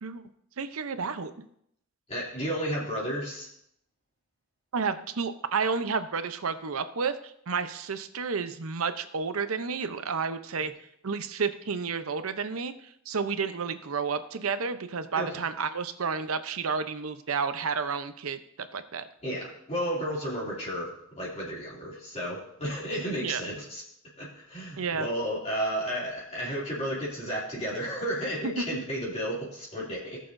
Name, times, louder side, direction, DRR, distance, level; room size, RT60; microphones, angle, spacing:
voice 1, 0.6-1.3 4.7-7.1 7.5-10.7 11.0-12.7 13.1-18.4 18.7-19.1 23.2-23.4 24.8-25.1 28.4-28.5, right 5 dB, 75° right, 10 dB, 0.7 m, -31 dB
voice 2, 2.1-3.5 15.1-15.4 19.2-23.8 24.2-30.2, equal, 30° left, -6 dB, 2.6 m, -32 dB
18.0 x 6.7 x 2.6 m, 0.74 s
head